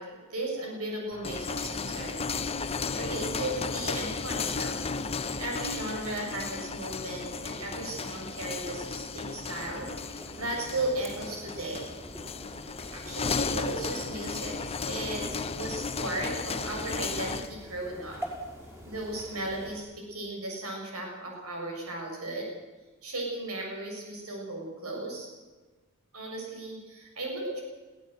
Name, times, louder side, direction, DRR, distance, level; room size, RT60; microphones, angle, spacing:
voice 1, 0.0-9.9 10.4-11.9 12.9-18.2 18.9-22.5 23.0-25.3 26.1-27.6, right 2 dB, 90° right, 0 dB, 7.0 m, -36 dB
sound 1, 1.1-17.5, left 4 dB, 30° left, 0.9 m, -34 dB
sound 2, 9.6-19.8, equal, 10° right, 5.8 m, -45 dB
22.0 x 17.0 x 7.9 m, 1.2 s
head